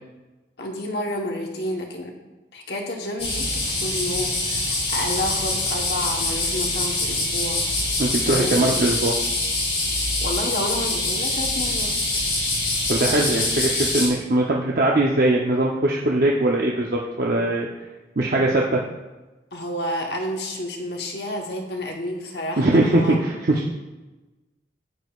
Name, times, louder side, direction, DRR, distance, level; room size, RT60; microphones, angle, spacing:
voice 1, 0.6-2.1 2.5-7.6 8.2-8.7 10.2-12.3 19.5-23.2, left 1 dB, 65° left, 1 dB, 1.1 m, -30 dB
sound 1, 3.2-14.1, left 2 dB, 35° left, 2.9 m, -24 dB
voice 2, 8.0-9.1 12.9-17.7 18.2-18.8 22.6-23.7, right 1 dB, 50° right, -2 dB, 0.7 m, -21 dB
10.5 x 8.7 x 2.4 m, 1.1 s
head